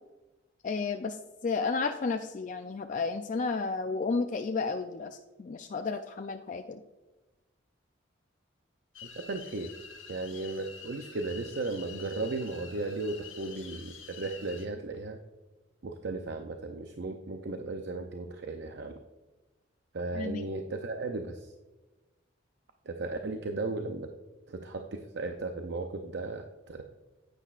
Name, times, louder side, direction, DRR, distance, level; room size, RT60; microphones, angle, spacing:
voice 1, 0.6-6.8 20.1-20.4, left 4 dB, 40° left, 5 dB, 0.4 m, -32 dB
sound 1, 8.9-14.7, left 7 dB, 90° left, 1.5 m, -48 dB
voice 2, 9.3-9.7 10.1-15.2 15.8-18.9 19.9-21.5 22.9-24.1 24.5-26.8, right 3 dB, 60° right, 5 dB, 0.6 m, -35 dB
9.9 x 9.1 x 2.4 m, 1.1 s
head